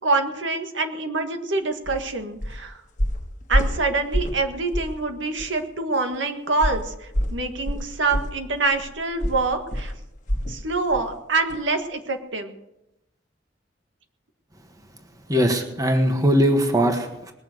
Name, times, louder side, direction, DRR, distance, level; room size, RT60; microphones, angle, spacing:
voice 1, 0.0-2.8 3.5-6.9 7.3-9.9 10.5-12.5, right 3 dB, 85° right, 6 dB, 1.7 m, -25 dB
sound 1, 1.8-2.0 2.4-2.6 3.0-4.4 4.7-5.0 5.4-5.5 6.6-10.6 10.9-11.1 11.5-11.6, equal, 45° left, 1.5 m, -26 dB
voice 2, 15.3-17.3, equal, 20° right, 5 dB, 1.5 m, -20 dB
21.0 x 7.0 x 8.0 m, 0.89 s
head